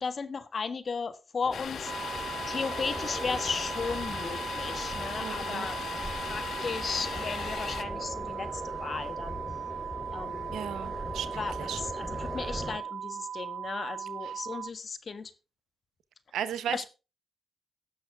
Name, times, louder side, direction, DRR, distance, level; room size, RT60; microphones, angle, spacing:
voice 1, 0.0-5.8 6.2-9.4 10.1-10.5 11.3-15.3 16.7-16.8, left 5 dB, 55° left, 12 dB, 1.4 m, -35 dB
sound 1, 1.4-12.8, equal, 5° left, 3.3 m, -40 dB
Domestic sounds home sounds, 1.5-7.8, left 8 dB, 75° left, 0.6 m, -38 dB
sound 2, 1.8-14.7, right 8 dB, 70° right, 0.5 m, -38 dB
voice 2, 5.2-5.7 10.5-11.8 14.2-14.3 16.3-16.8, right 9 dB, 90° right, 14 dB, 0.9 m, -36 dB
17.5 x 6.3 x 3.5 m, 0.30 s
supercardioid pair, 45°, 0 cm